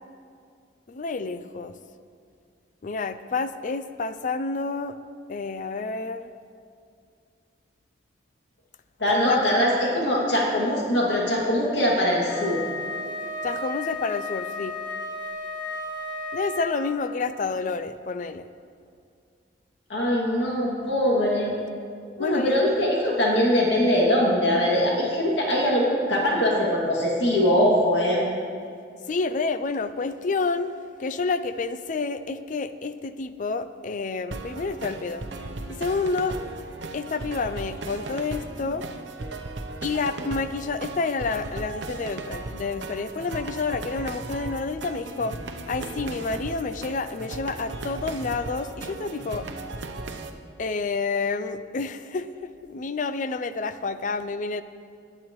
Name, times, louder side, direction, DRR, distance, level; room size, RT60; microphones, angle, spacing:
voice 1, 0.9-1.8 2.8-5.0 5.3-6.3 9.1-9.4 13.4-14.8 16.3-18.5 22.2-22.6 29.1-30.7 31.0-35.2 35.7-36.4 36.9-38.8 39.8-45.4 45.7-49.5 50.6-54.6, left 4 dB, 45° left, 12 dB, 0.4 m, -29 dB
voice 2, 9.0-12.6 19.9-21.5 22.2-28.2, equal, 90° left, -4 dB, 2.4 m, -22 dB
Wind instrument woodwind instrument, 12.3-17.0, left 2 dB, 25° right, 1.3 m, -33 dB
sound 1, 34.3-50.3, right 2 dB, 85° right, 0.8 m, -36 dB
21.0 x 8.7 x 3.1 m, 2.3 s
head